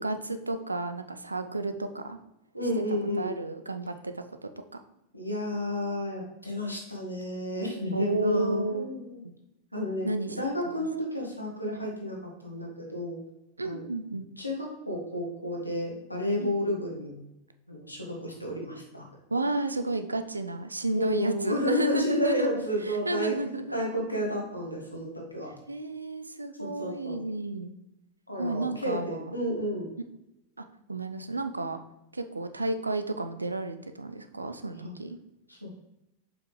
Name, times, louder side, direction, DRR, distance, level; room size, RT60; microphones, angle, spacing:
voice 1, 0.0-2.2 2.9-4.8 7.9-8.9 9.2-9.3 10.1-10.4 10.7-10.9 13.6-14.3 16.4-16.5 19.3-22.5 22.8-23.8 25.7-27.7 28.4-29.3 30.6-31.8 32.1-35.2, right 2 dB, 80° right, 9 dB, 0.5 m, -32 dB
voice 2, 2.5-3.3 5.1-9.2 9.7-10.1 10.4-13.2 13.6-13.8 14.4-17.2 17.7-19.1 21.0-23.4 23.7-25.5 26.6-27.2 28.3-29.9 34.7-34.9 35.5-35.7, equal, 90° left, -1 dB, 1.6 m, -31 dB
6.9 x 5.6 x 3.2 m, 0.90 s
figure-of-eight pair, 90°, 0 cm